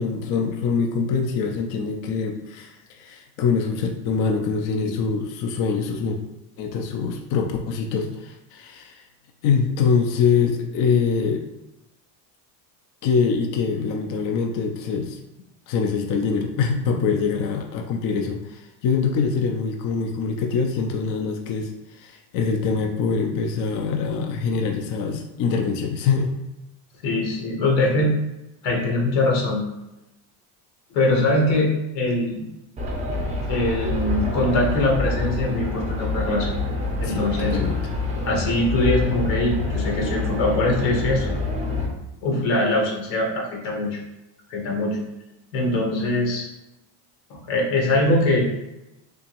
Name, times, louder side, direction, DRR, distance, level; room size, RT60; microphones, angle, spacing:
voice 1, 0.0-6.2 6.6-9.0 9.4-11.4 13.0-15.2 15.7-26.3 37.0-37.9, left 5 dB, 45° left, 3 dB, 0.4 m, -24 dB
voice 2, 27.0-28.1 28.6-29.6 30.9-32.4 33.5-36.6 37.0-37.6 38.2-41.3 42.2-44.0 44.5-45.0 45.5-46.5 47.3-48.4, left 2 dB, 90° left, -1 dB, 1.5 m, -22 dB
sound 1, 32.8-41.9, left 2 dB, 15° right, 0.5 m, -26 dB
3.5 x 2.9 x 2.9 m, 0.93 s
cardioid pair, 135°, 47 cm